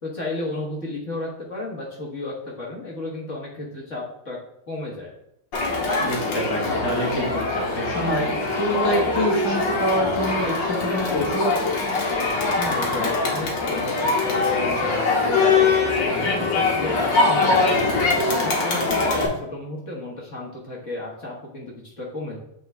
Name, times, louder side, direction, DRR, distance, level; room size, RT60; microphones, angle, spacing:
voice 1, 0.0-4.4 4.7-5.1 12.6-17.7 18.1-22.4, left 1 dB, 40° left, -4 dB, 1.4 m, -33 dB
Crowd, 5.5-19.3, left 3 dB, 60° left, 1.9 m, -22 dB
voice 2, 6.0-11.7 17.5-17.6, equal, 15° left, -3 dB, 1.0 m, -26 dB
8.5 x 3.7 x 3.4 m, 0.75 s
omnidirectional pair, 2.4 m